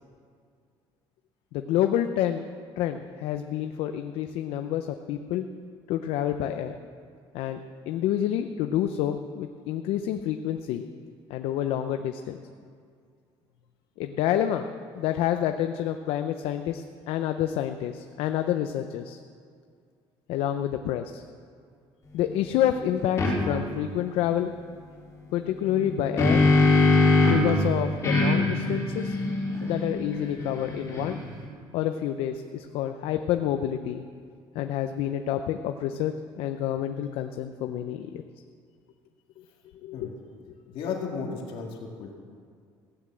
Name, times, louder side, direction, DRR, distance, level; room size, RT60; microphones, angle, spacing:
voice 1, 1.5-2.5 2.8-5.4 5.9-6.7 7.3-7.6 7.9-10.9 11.3-12.4 14.0-14.7 14.9-19.2 20.3-21.2 22.1-24.5 25.3-26.4 27.3-29.2 29.6-31.2 31.7-34.0 34.5-38.2 39.8-40.1, left 11 dB, 80° left, 7 dB, 0.6 m, -28 dB
sound 1, 23.2-23.3 25.7-27.5 28.0-31.4, left 3 dB, 30° left, 4.0 m, -22 dB
voice 2, 40.7-42.2, left 5 dB, 65° left, 0 dB, 2.1 m, -34 dB
15.5 x 9.8 x 7.4 m, 2.2 s
cardioid pair, 150°, 10 cm